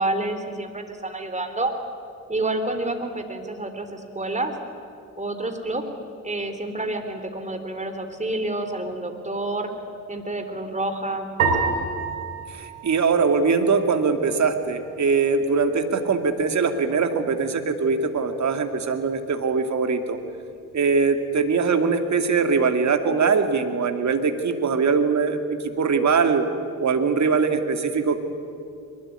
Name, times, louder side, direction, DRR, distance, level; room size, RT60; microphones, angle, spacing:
voice 1, 0.0-1.7 2.3-4.5 5.2-5.8 6.2-9.7 10.1-11.3 11.6-11.7, right 2 dB, 15° right, 6 dB, 3.7 m, -28 dB
sound 1, 11.4-13.9, right 4 dB, 85° right, 3.1 m, -27 dB
voice 2, 12.5-20.2 20.7-26.5 26.8-28.2, right 5 dB, 45° right, 6 dB, 2.5 m, -22 dB
22.0 x 21.5 x 9.8 m, 2.5 s
figure-of-eight pair, 45°, 41 cm